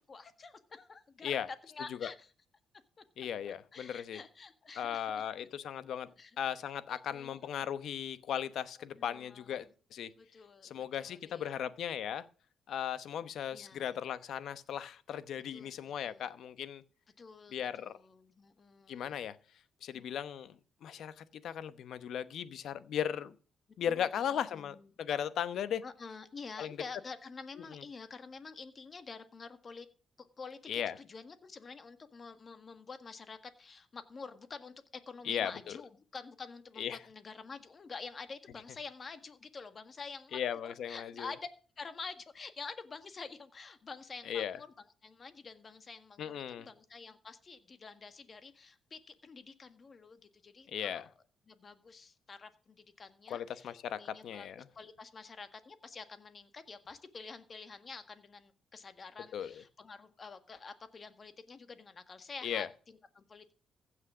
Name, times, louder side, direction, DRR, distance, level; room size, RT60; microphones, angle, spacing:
voice 1, 0.0-2.3 3.7-5.3 6.0-6.4 6.9-7.5 9.0-9.7 10.2-11.7 13.5-14.0 15.5-16.3 17.2-19.1 19.9-20.1 23.9-24.9 25.8-29.9 30.2-41.5 41.8-44.7 45.0-51.0 51.5-63.5, left 4 dB, 40° left, 1.6 m, -48 dB
voice 2, 3.2-4.2 4.8-6.1 6.4-10.1 10.6-12.3 12.7-16.8 17.5-18.0 18.9-19.4 19.8-23.3 23.8-25.8 26.6-26.8 27.7-27.8 30.7-31.0 35.2-35.8 36.8-37.0 40.3-41.3 44.3-44.6 46.2-46.7 50.7-51.0 53.3-54.7 59.3-59.6 62.4-62.7, left 9 dB, 70° left, 0.9 m, -37 dB
15.5 x 6.4 x 6.2 m
cardioid pair, 90°, 0 cm